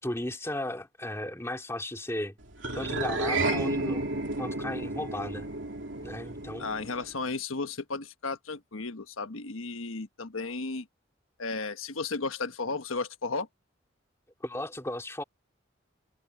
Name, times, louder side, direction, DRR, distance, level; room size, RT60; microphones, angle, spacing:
voice 1, 0.0-2.4 2.7-4.0 4.4-5.5 6.0-6.7 14.4-15.2, left 1 dB, 15° left, 3.0 m, -35 dB
sound 1, 2.6-7.2, right 2 dB, 70° right, 2.7 m, -32 dB
voice 2, 6.6-10.9 11.4-13.5, left 3 dB, 85° left, 1.3 m, -34 dB
head